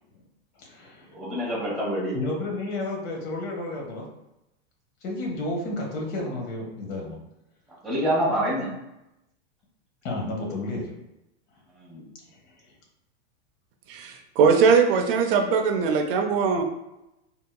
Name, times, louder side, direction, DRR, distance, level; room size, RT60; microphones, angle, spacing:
voice 1, 0.6-1.1 2.1-4.1 5.0-7.2 10.0-10.9 12.3-12.7, left 2 dB, 45° left, 1.2 m, -32 dB
voice 2, 1.1-2.2 7.8-8.7 11.9-12.0, equal, ahead, 0.7 m, -26 dB
voice 3, 13.9-16.6, right 5 dB, 55° right, 0.5 m, -21 dB
3.7 x 2.7 x 2.2 m
supercardioid pair, 145°, 33 cm